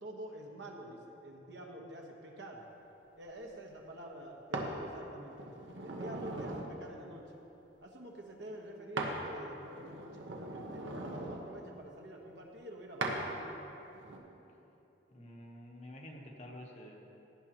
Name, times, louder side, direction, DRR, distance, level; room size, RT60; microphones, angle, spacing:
voice 1, 0.0-2.7 3.2-5.4 5.8-7.2 7.8-13.6, right 1 dB, 65° right, 0 dB, 1.3 m, -48 dB
sound 1, 4.5-4.7 5.4-6.7 9.0-9.2 9.6-11.4 13.0-13.2 13.9-14.2, right 2 dB, 85° right, 1.2 m, -39 dB
voice 2, 15.1-16.9, left 1 dB, 35° left, 0 dB, 1.1 m, -49 dB
17.0 x 10.0 x 3.0 m, 3.0 s
head